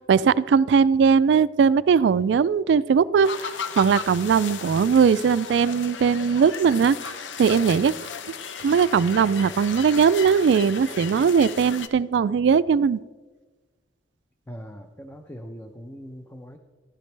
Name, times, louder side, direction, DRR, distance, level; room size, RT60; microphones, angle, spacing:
voice 1, 0.1-7.0 7.4-7.9 8.6-13.0, right 6 dB, 70° right, 19 dB, 0.3 m, -19 dB
sound 1, 3.2-11.9, left 6 dB, 85° left, 0.7 m, -36 dB
voice 2, 14.5-16.6, equal, 10° left, 4 dB, 0.6 m, -41 dB
12.5 x 12.0 x 3.3 m, 1.3 s
head